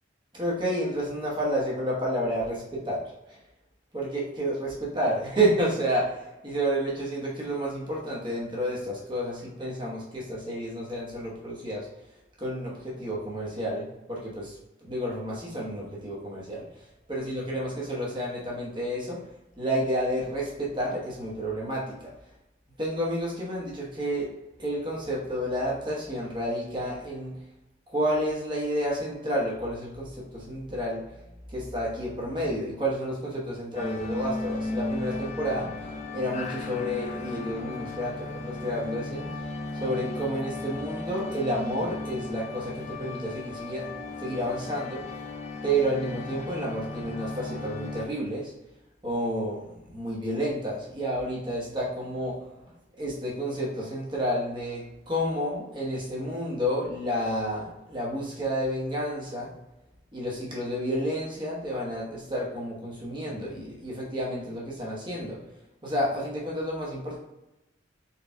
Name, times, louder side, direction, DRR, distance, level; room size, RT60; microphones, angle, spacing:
voice 1, 0.3-3.0 3.9-11.9 12.4-14.6 14.8-16.6 17.1-19.2 19.6-22.1 22.8-24.3 24.6-27.3 27.9-31.0 31.5-35.7 36.1-39.3 39.8-45.0 45.6-48.5 49.0-52.5 53.0-59.5 60.1-65.4 65.8-67.2, equal, 25° right, -5 dB, 0.9 m, -30 dB
sound 1, 33.7-48.0, left 2 dB, 35° left, 0.4 m, -36 dB
4.2 x 2.4 x 3.4 m, 0.97 s
head